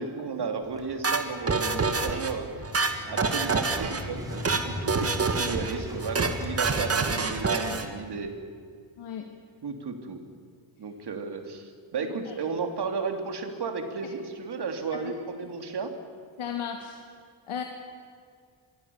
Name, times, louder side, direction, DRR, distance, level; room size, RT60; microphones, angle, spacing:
voice 1, 0.0-2.5 3.1-8.3 9.6-10.2 10.8-15.9, right 4 dB, 50° right, 5 dB, 3.2 m, -34 dB
Motorcycle / Engine starting, 0.6-7.9, left 1 dB, 5° right, 4.1 m, -40 dB
sound 1, 1.0-2.3 2.6-4.0 4.3-4.6 4.9-5.7 6.0-6.3 6.6-7.9, right 4 dB, 30° right, 2.2 m, -26 dB
voice 2, 9.0-9.3 12.0-12.3 15.0-15.1 16.4-17.0 17.5-17.6, left 8 dB, 80° left, 3 dB, 2.1 m, -35 dB
27.5 x 22.5 x 7.2 m, 2.1 s
cardioid pair, 125°, 49 cm